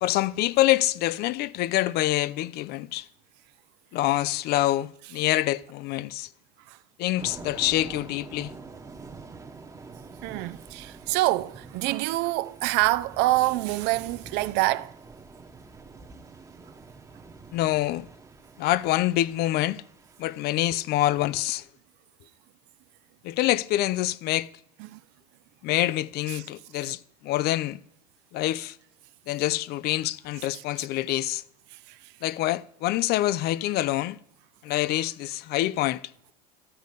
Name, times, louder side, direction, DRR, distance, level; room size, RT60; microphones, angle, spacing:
voice 1, 0.0-3.1 3.9-6.3 7.0-8.5 17.5-18.1 18.6-19.8 20.2-21.7 23.2-24.5 25.6-27.8 28.3-28.8 29.3-31.4 32.2-34.2 34.6-36.0, left 15 dB, 50° left, 0.5 m, -26 dB
Thunder / Rain, 7.2-20.9, right 4 dB, 15° right, 1.1 m, -46 dB
voice 2, 10.2-14.9 24.9-25.0, right 18 dB, 60° right, 0.5 m, -26 dB
12.5 x 5.2 x 6.5 m
hypercardioid pair, 90°, 20 cm